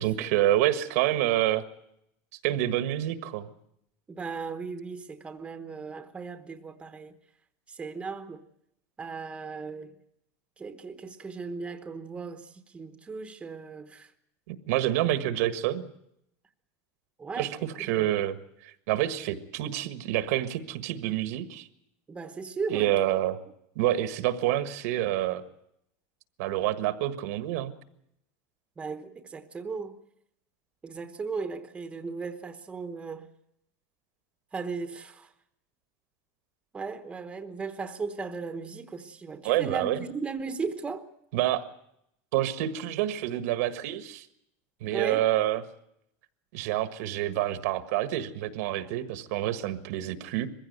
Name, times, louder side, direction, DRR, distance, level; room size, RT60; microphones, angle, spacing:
voice 1, 0.0-1.6 2.4-3.5 14.5-15.8 17.4-17.5 17.8-18.4 18.9-21.7 22.7-23.4 23.7-25.4 26.4-27.7 39.4-40.0 41.3-41.6 42.3-44.2 44.8-45.6 46.5-50.5, right 13 dB, 70° right, 1.6 m, -27 dB
voice 2, 4.1-7.1 7.7-8.4 9.0-10.0 10.6-14.1 17.2-17.9 22.1-22.9 28.8-30.0 30.8-33.3 34.5-35.3 36.7-41.0 44.9-45.3, right 4 dB, 10° right, 1.1 m, -37 dB
22.0 x 15.5 x 9.4 m
supercardioid pair, 165°, 9 cm